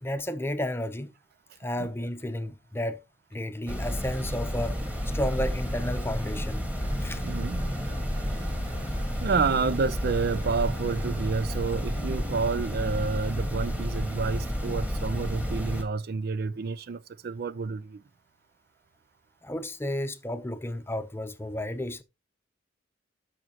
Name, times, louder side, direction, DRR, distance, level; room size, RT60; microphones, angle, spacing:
voice 1, 0.0-1.1 1.6-3.0 3.3-4.8 5.1-6.7 7.0-7.2 19.4-22.0, left 1 dB, 15° left, 0.7 m, -32 dB
sound 1, 3.7-15.8, equal, 10° right, 1.8 m, -31 dB
sound 2, 6.8-11.2, right 3 dB, 90° right, 1.0 m, -47 dB
voice 2, 7.2-7.7 9.2-18.0, right 4 dB, 55° right, 0.4 m, -29 dB
12.5 x 5.0 x 3.0 m
head